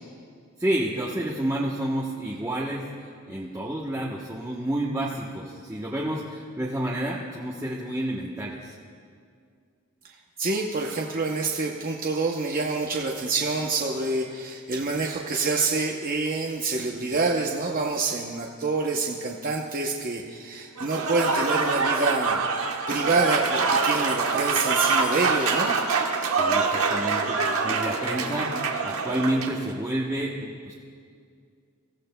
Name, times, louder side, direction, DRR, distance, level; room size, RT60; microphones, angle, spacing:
voice 1, 0.6-2.9 3.3-8.7 26.4-30.7, right 1 dB, 15° right, -5 dB, 0.9 m, -29 dB
voice 2, 10.4-22.4 22.9-25.8, right 3 dB, 40° right, 0 dB, 0.7 m, -27 dB
Applause / Crowd, 20.8-29.6, right 4 dB, 80° right, 1.1 m, -25 dB
24.5 x 15.5 x 2.2 m, 2.2 s
head